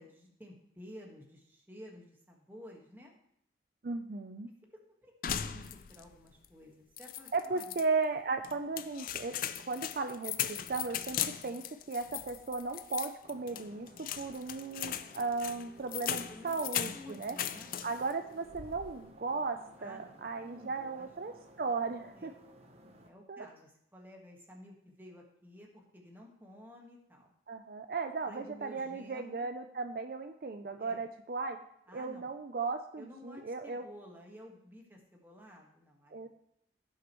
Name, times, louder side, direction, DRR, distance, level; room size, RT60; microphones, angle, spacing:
voice 1, 0.0-3.1 4.7-7.7 16.0-16.5 16.9-17.7 19.8-20.1 20.4-21.1 22.1-22.3 23.1-27.3 28.3-29.5 30.8-31.0 31.9-32.3 33.0-36.3, left 1 dB, 10° right, 0 dB, 1.6 m, -53 dB
voice 2, 3.8-4.5 7.3-9.4 9.7-17.4 17.8-21.3 21.6-22.3 23.3-23.5 27.5-31.6 31.9-33.9 36.1-36.3, right 4 dB, 55° right, 7 dB, 0.5 m, -36 dB
sound 1, 5.2-6.1 6.4-6.5 7.0-7.9 8.4-18.1 18.5-19.0, left 10 dB, 50° left, 0.4 m, -38 dB
sound 2, 13.2-23.1, equal, 35° right, 0.9 m, -58 dB
16.0 x 6.5 x 3.1 m, 0.73 s
head